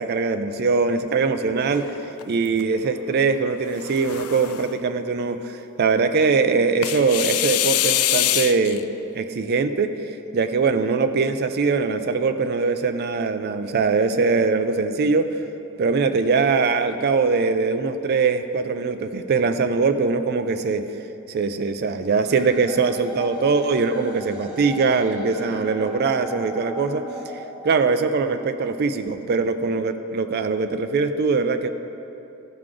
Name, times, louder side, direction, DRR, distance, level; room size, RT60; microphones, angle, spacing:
voice 1, 0.0-1.9 2.3-8.8 9.1-9.9 10.3-15.3 15.8-20.9 21.3-27.0 27.6-31.7, right 4 dB, 45° right, 8 dB, 0.4 m, -22 dB
sound 1, 1.7-2.6 3.6-4.8 6.8-8.8, left 13 dB, 75° left, 0.3 m, -24 dB
sound 2, 22.3-28.3, left 1 dB, 5° right, 1.8 m, -38 dB
13.5 x 4.7 x 3.8 m, 2.9 s
head